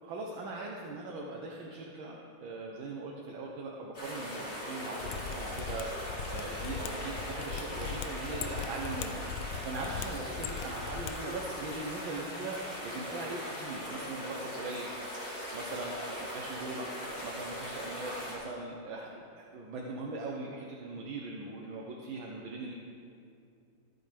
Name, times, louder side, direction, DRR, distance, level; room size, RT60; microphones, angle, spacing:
voice 1, 0.0-9.2 9.6-14.9 15.5-15.9 16.2-16.9 17.2-22.7, right 2 dB, 75° right, -1 dB, 1.8 m, -40 dB
sound 1, 3.9-18.3, equal, 45° left, 4.0 m, -40 dB
Mechanisms, 5.0-11.1 11.4-11.5, left 7 dB, 85° left, 1.5 m, -39 dB
23.5 x 8.9 x 3.5 m, 2.5 s
omnidirectional pair, 2.2 m